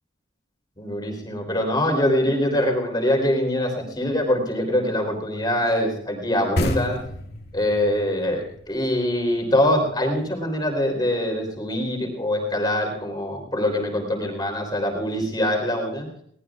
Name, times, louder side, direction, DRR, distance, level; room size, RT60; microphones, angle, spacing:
voice 1, 0.8-7.0 7.5-16.1, left 1 dB, 20° left, 1 dB, 3.5 m, -23 dB
sound 1, 6.6-10.0, left 1 dB, 55° left, 2.2 m, -30 dB
22.5 x 18.5 x 2.5 m, 0.68 s
head